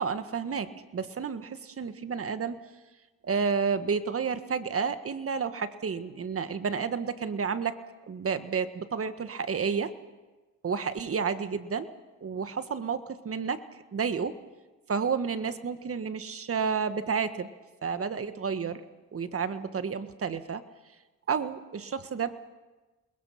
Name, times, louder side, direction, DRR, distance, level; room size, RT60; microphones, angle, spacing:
voice 1, 0.0-2.6 3.2-7.8 8.1-9.9 10.6-11.9 12.2-13.6 13.9-14.4 14.9-17.5 17.8-18.8 19.1-20.6 21.3-22.4, right 6 dB, 45° right, 10 dB, 1.6 m, -31 dB
28.0 x 21.5 x 5.9 m, 1.2 s
cardioid pair, 75°, 32 cm